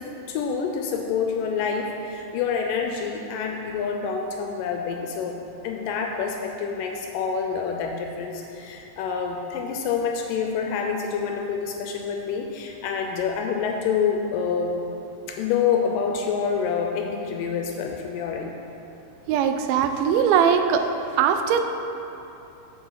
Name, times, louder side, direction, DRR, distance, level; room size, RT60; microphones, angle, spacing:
voice 1, 0.0-5.4 5.6-14.8 15.3-18.6, left 6 dB, 80° left, 3 dB, 2.0 m, -27 dB
voice 2, 19.3-20.9 21.1-21.6, right 7 dB, 85° right, 7 dB, 2.4 m, -20 dB
7.7 x 7.0 x 4.7 m, 2.9 s
omnidirectional pair, 4.2 m